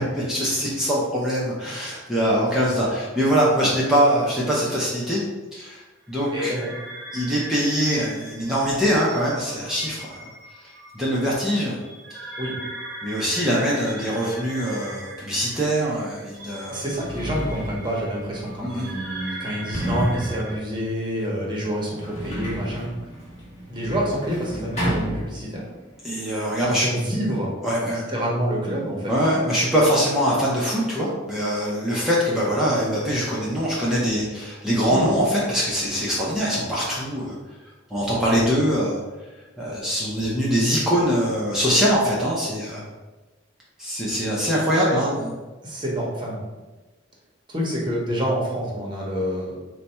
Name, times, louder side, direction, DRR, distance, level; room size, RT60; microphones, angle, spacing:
voice 1, 0.1-5.2 5.5-5.8 6.1-6.5 7.1-10.3 10.9-11.8 13.0-16.8 18.6-18.9 26.0-26.9 27.6-28.0 29.1-37.4 37.9-39.0 39.6-42.8 43.8-45.3, equal, ahead, -7 dB, 0.6 m, -23 dB
sound 1, 6.1-20.5, right 1 dB, 60° right, 0.7 m, -40 dB
voice 2, 6.3-6.7 12.4-12.6 16.7-22.9 23.7-25.6 26.6-27.5 27.8-29.1 34.9-35.1 44.8-45.1 45.6-46.4 47.5-49.6, equal, 25° right, -3 dB, 0.9 m, -27 dB
Sliding door, 16.0-16.1 16.7-25.9 26.1-27.0, right 1 dB, 35° left, 1.2 m, -32 dB
4.0 x 2.3 x 4.2 m, 1.2 s
head